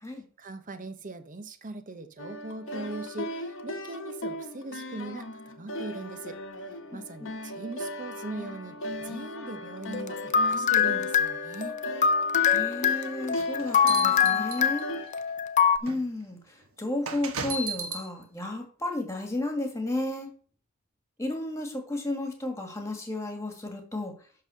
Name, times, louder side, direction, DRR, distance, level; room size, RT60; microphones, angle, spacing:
voice 1, 0.4-6.4 6.9-11.8, right 2 dB, 40° right, 9 dB, 0.9 m, -40 dB
sound 1, 2.2-15.1, left 1 dB, 65° left, 1.2 m, -38 dB
voice 2, 6.9-7.3 12.5-14.9 15.8-16.4 16.8-20.3 21.2-24.1, left 2 dB, 15° left, 4 dB, 1.9 m, -33 dB
sound 2, 9.9-15.8, left 7 dB, 35° left, 0.6 m, -24 dB
sound 3, 13.3-15.1 15.9-16.0 17.1-18.1, right 3 dB, 80° right, 1.3 m, -34 dB
11.0 x 3.8 x 6.3 m, 0.43 s
head